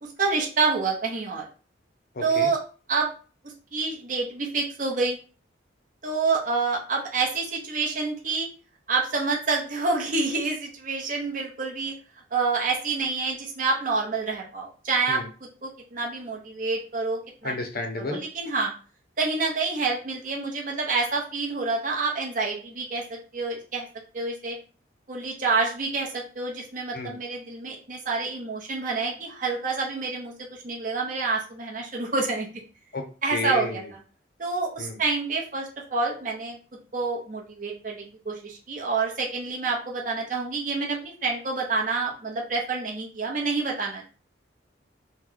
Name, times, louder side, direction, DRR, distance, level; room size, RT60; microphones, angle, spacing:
voice 1, 0.0-1.5 2.2-2.6 2.9-3.1 3.4-5.2 6.0-8.5 8.9-11.9 12.3-15.2 15.6-17.5 18.0-18.7 19.2-23.9 24.1-24.6 25.1-32.6 33.2-33.8 34.4-36.6 36.9-44.0, right 4 dB, 45° right, -1 dB, 0.7 m, -28 dB
voice 2, 2.1-2.5 15.1-15.3 17.4-18.2 26.9-27.2 32.9-33.0 33.3-33.9 34.8-35.0, left 3 dB, 50° left, 4 dB, 0.5 m, -32 dB
3.0 x 2.1 x 3.7 m, 0.37 s
head